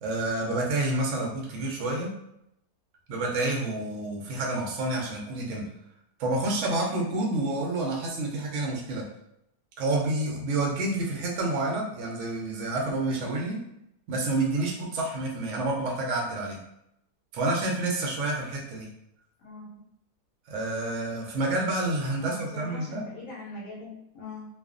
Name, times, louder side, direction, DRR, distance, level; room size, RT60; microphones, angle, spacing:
voice 1, 0.0-2.1 3.1-5.6 6.2-9.0 9.8-13.6 14.1-16.6 17.3-18.9 20.5-23.0, right 2 dB, 70° right, -1 dB, 0.7 m, -29 dB
voice 2, 19.4-19.8 22.2-24.5, left 2 dB, 70° left, -3 dB, 0.9 m, -42 dB
2.4 x 2.3 x 2.4 m, 0.79 s
omnidirectional pair, 1.7 m